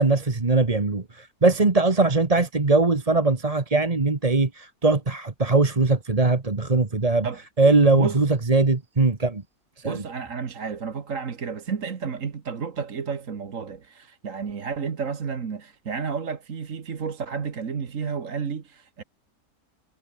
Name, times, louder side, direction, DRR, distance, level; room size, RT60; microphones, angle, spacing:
voice 1, 0.0-7.3 7.6-9.4 9.8-10.0, right 3 dB, 25° right, 1.5 m, -21 dB
voice 2, 9.8-19.0, right 6 dB, 60° right, 1.9 m, -31 dB
omnidirectional pair, 1.6 m